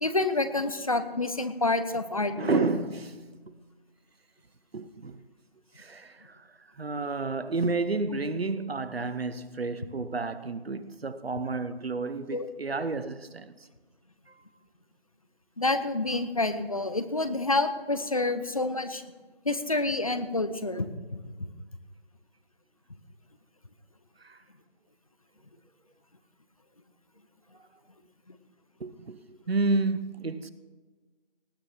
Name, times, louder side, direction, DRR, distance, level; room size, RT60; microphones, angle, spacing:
voice 1, 0.0-2.6 12.3-12.5 15.6-19.0 19.4-21.2 28.3-28.4, left 2 dB, 35° left, 0.8 m, -28 dB
voice 2, 2.3-3.4 4.7-5.2 5.8-6.5 6.8-13.5 14.3-14.4 24.2-24.4 28.8-30.5, right 3 dB, 80° right, 1.0 m, -31 dB
18.5 x 6.9 x 5.7 m
figure-of-eight pair, 170°, 30 cm